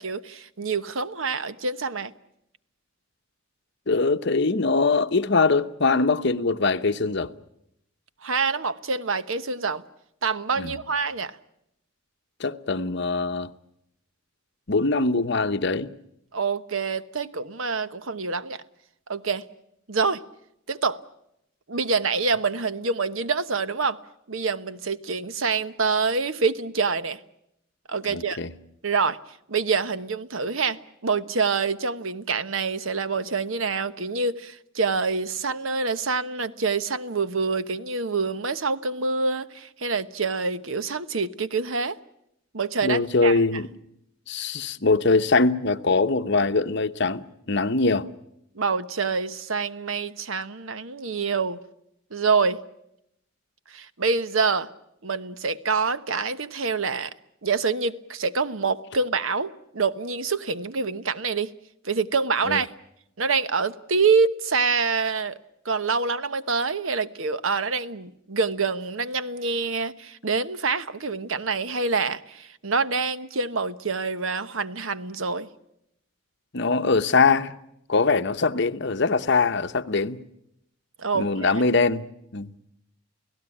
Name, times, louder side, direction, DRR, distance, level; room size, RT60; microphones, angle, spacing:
voice 1, 0.0-2.1 8.2-9.8 10.2-11.4 16.3-18.6 19.1-19.5 19.9-20.2 20.7-21.0 21.7-24.0 24.3-27.2 27.9-28.4 28.8-29.2 29.5-42.0 42.5-43.4 48.5-51.6 52.1-52.6 53.7-54.7 55.0-57.1 57.4-61.5 61.8-62.7 63.2-65.4 65.6-75.5 81.0-81.6, right 4 dB, 75° right, 1.1 m, -26 dB
voice 2, 3.9-7.3 10.6-10.7 12.4-13.5 14.7-15.9 28.1-28.5 42.8-43.7 44.3-48.1 62.5-62.6 76.5-77.5 77.9-80.2 81.1-82.1 82.3-82.5, left 3 dB, 55° left, 1.0 m, -22 dB
29.5 x 17.5 x 10.0 m
head